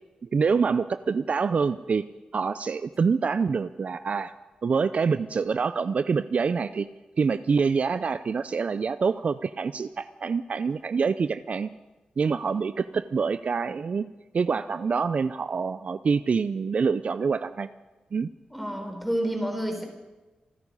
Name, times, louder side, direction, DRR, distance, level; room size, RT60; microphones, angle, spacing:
voice 1, 0.2-2.1 2.3-4.3 4.6-6.9 7.2-11.7 12.2-14.0 14.3-17.7 18.1-18.3, right 5 dB, 55° right, 13 dB, 0.5 m, -26 dB
voice 2, 18.5-19.8, equal, ahead, 2 dB, 4.3 m, -29 dB
27.0 x 9.7 x 5.5 m, 1.1 s
cardioid pair, 75°, 3 cm